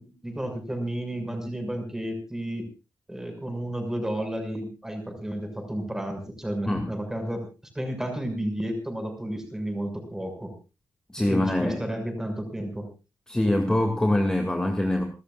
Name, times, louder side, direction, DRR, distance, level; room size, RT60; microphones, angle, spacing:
voice 1, 0.0-2.7 3.1-7.5 7.7-10.5 11.3-12.9, right 1 dB, 10° right, 5 dB, 6.3 m, -32 dB
voice 2, 11.1-11.8 13.3-15.0, left 1 dB, 10° left, 4 dB, 2.4 m, -24 dB
29.5 x 14.0 x 2.5 m, 0.31 s
wide cardioid pair, 140°, 7 cm